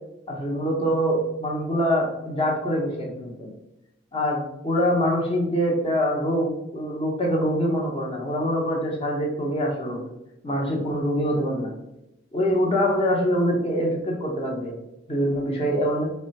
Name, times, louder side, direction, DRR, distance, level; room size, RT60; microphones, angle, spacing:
voice 1, 0.3-3.5 4.1-10.0 10.4-11.7 12.3-14.8 15.1-16.0, equal, 30° left, -1 dB, 0.9 m, -24 dB
4.2 x 2.2 x 4.0 m, 0.90 s
head